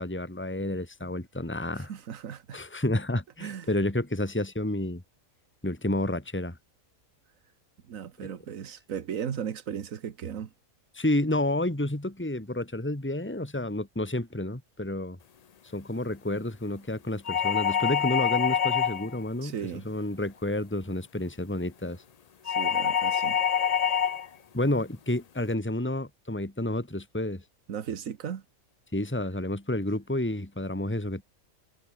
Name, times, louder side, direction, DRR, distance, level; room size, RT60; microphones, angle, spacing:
voice 1, 0.0-1.9 2.5-5.0 5.6-6.6 10.9-15.2 15.7-19.5 19.8-22.0 24.5-27.4 28.9-31.2, left 1 dB, 10° left, 2.4 m, -30 dB
voice 2, 1.8-2.6 3.4-3.8 7.9-10.5 19.4-19.9 22.4-23.4 27.7-28.4, right 8 dB, 75° right, 1.6 m, -36 dB
sound 1, 17.3-19.2 22.5-24.3, left 8 dB, 60° left, 0.4 m, -26 dB
omnidirectional pair, 1.4 m